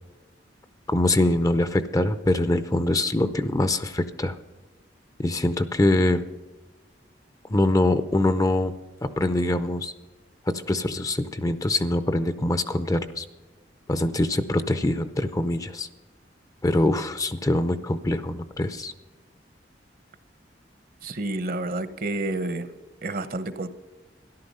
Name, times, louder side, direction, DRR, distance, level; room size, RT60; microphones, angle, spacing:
voice 1, 0.9-4.4 5.2-6.2 7.5-8.7 9.0-9.9 10.5-13.2 13.9-15.9 16.6-18.9, left 1 dB, 20° left, 12 dB, 0.6 m, -24 dB
voice 2, 21.0-22.7 23.0-23.7, right 2 dB, 55° right, 12 dB, 0.9 m, -29 dB
13.5 x 11.5 x 5.5 m, 1.3 s
head